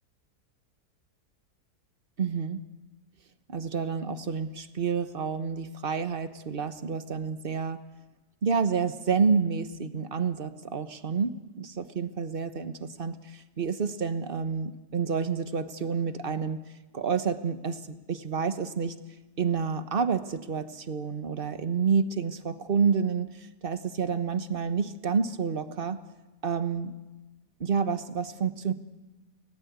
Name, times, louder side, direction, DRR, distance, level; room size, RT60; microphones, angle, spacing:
voice 1, 2.2-2.6 3.5-7.8 8.4-16.6 16.9-19.0 19.4-26.0 26.4-26.9 27.6-28.7, right 5 dB, 35° right, 10 dB, 1.2 m, -29 dB
30.0 x 19.5 x 8.3 m, 1.1 s
omnidirectional pair, 1.8 m